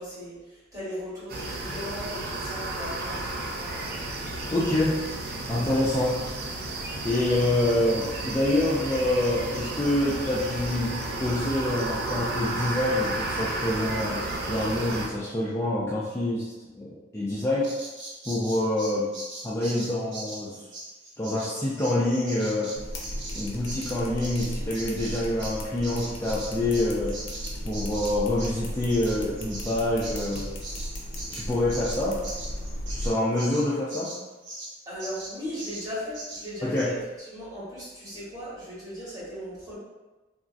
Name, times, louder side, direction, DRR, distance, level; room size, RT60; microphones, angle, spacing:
voice 1, 0.0-3.9 34.9-39.8, equal, 20° right, -10 dB, 1.3 m, -38 dB
sound 1, 1.3-15.1, right 2 dB, 55° right, 0.5 m, -32 dB
voice 2, 4.5-5.0 5.5-6.3 7.0-14.2 14.5-17.7 18.3-19.1 19.4-20.5 21.2-22.7 23.3-27.2 27.6-30.5 31.3-32.2 32.9-34.1 36.6-36.9, left 1 dB, 15° left, -8 dB, 0.4 m, -26 dB
Bird vocalization bird call bird song, 17.6-25.6 25.8-34.7 35.0-35.3 35.6-35.9 36.1-36.4 36.8-36.9, right 2 dB, 75° right, 0.8 m, -40 dB
sound 2, 22.8-33.1, equal, 80° left, 0.5 m, -36 dB
3.0 x 2.4 x 2.5 m, 1.1 s
head